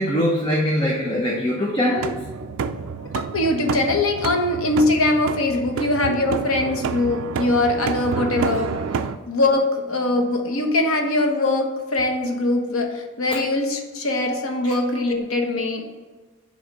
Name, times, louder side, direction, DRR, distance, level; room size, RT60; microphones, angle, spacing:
voice 1, 0.0-2.2 5.8-5.9 14.6-14.7, equal, 20° left, -3 dB, 0.8 m, -22 dB
sound 1, 2.0-9.2, right 5 dB, 70° right, 0.4 m, -29 dB
voice 2, 3.3-8.7 9.3-15.8, left 2 dB, 75° left, 3 dB, 1.0 m, -22 dB
7.7 x 3.2 x 5.1 m, 1.3 s
head